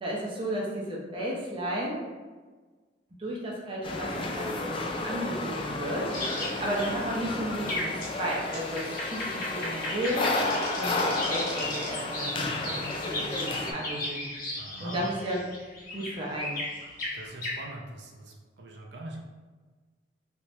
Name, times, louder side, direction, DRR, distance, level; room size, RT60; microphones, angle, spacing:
voice 1, 0.0-2.0 3.2-6.2 6.6-10.3 10.7-14.3 14.8-15.4 15.9-16.6, equal, 30° right, -4 dB, 0.6 m, -33 dB
sound 1, 3.8-13.7, left 2 dB, 30° left, 0.4 m, -32 dB
sound 2, 6.1-17.6, left 1 dB, 50° left, 0.9 m, -36 dB
voice 2, 14.6-15.1 17.1-19.2, right 1 dB, 70° right, 0 dB, 0.6 m, -42 dB
3.4 x 2.9 x 3.1 m, 1.4 s
head